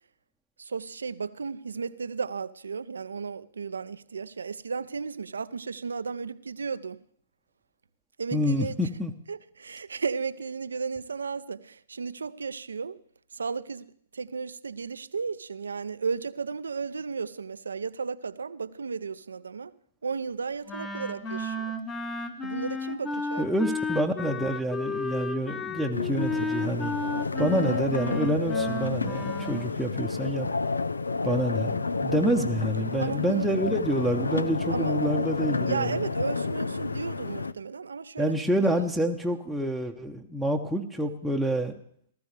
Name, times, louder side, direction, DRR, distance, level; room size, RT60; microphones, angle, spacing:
voice 1, 0.6-7.0 8.2-8.8 9.3-13.0 13.3-13.9 14.1-19.7 20.0-21.7 22.4-23.5 33.0-33.6 34.7-35.0 35.6-38.4 38.6-38.7, right 5 dB, 80° right, 0.6 m, -34 dB
voice 2, 8.3-9.1 23.4-26.9 27.4-30.5 31.2-35.9 38.2-41.7, right 1 dB, ahead, 0.9 m, -27 dB
Wind instrument woodwind instrument, 20.7-29.7, left 2 dB, 20° left, 1.3 m, -33 dB
sound 1, 25.9-37.5, left 4 dB, 85° left, 0.5 m, -30 dB
19.0 x 13.5 x 3.3 m
hypercardioid pair, 120°, 0 cm